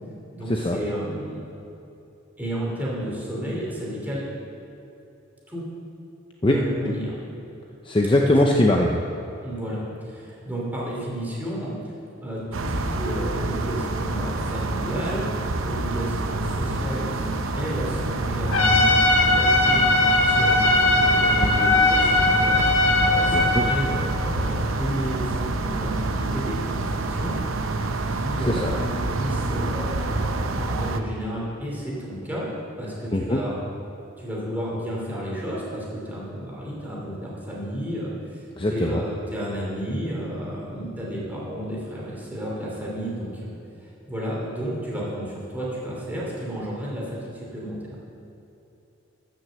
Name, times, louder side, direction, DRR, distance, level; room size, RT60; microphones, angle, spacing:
voice 1, 0.3-1.4 2.4-4.2 5.5-5.6 6.4-7.1 8.2-8.4 9.4-11.8 12.2-18.9 19.3-19.8 20.2-27.4 28.1-32.5 32.8-33.5 34.2-43.5 43.8-48.0, right 1 dB, 10° right, -5 dB, 2.9 m, -32 dB
voice 2, 7.8-9.0 23.3-23.6 28.5-28.7 33.1-33.4 38.6-39.0, left 1 dB, 25° left, 1 dB, 0.6 m, -21 dB
sound 1, 12.5-31.0, right 2 dB, 85° right, 0.7 m, -27 dB
Trumpet, 18.5-23.8, left 2 dB, 75° left, 1.7 m, -19 dB
13.0 x 6.3 x 7.6 m, 2.9 s
head